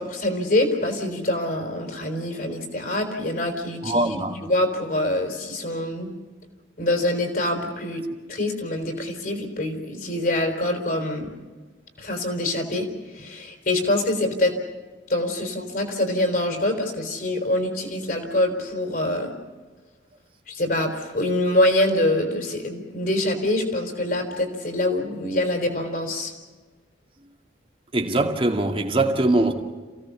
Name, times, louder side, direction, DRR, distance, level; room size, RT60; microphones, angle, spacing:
voice 1, 0.0-6.1 6.8-8.0 8.3-11.3 12.0-14.5 15.1-19.3 20.5-26.3, left 1 dB, 50° left, 4.4 m, -25 dB
voice 2, 3.8-4.3 27.9-29.5, right 2 dB, 30° right, 2.2 m, -22 dB
28.0 x 17.0 x 7.0 m
head